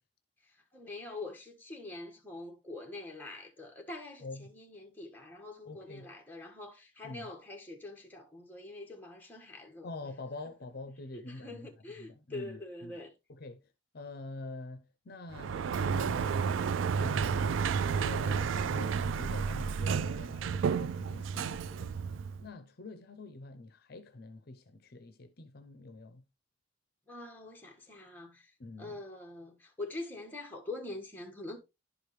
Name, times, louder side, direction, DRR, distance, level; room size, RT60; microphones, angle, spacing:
voice 1, 0.5-9.9 11.1-13.1 27.1-28.5 28.8-31.6, left 2 dB, 10° left, 1.5 m, -44 dB
voice 2, 4.2-4.5 5.6-6.1 7.0-7.3 9.8-11.7 12.0-13.0 13.3-13.6 13.9-16.5 16.9-21.9 22.4-26.2 28.6-29.0, left 2 dB, 55° left, 0.7 m, -45 dB
Sliding door, 15.3-22.5, right 6 dB, 90° right, 0.3 m, -31 dB
11.0 x 5.1 x 3.1 m
head